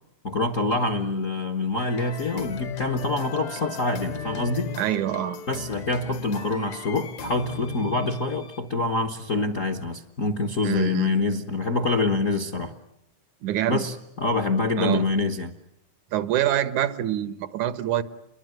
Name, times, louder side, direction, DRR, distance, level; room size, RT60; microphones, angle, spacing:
voice 1, 0.2-4.7 5.5-12.7 13.7-15.5, left 2 dB, 50° left, 7 dB, 0.9 m, -26 dB
sound 1, 1.8-8.7, left 7 dB, 70° left, 2.8 m, -37 dB
voice 2, 4.8-5.4 10.6-11.1 13.4-13.8 14.8-15.1 16.1-18.0, right 12 dB, 85° right, 13 dB, 2.7 m, -25 dB
28.5 x 22.0 x 9.1 m, 0.83 s
omnidirectional pair, 3.3 m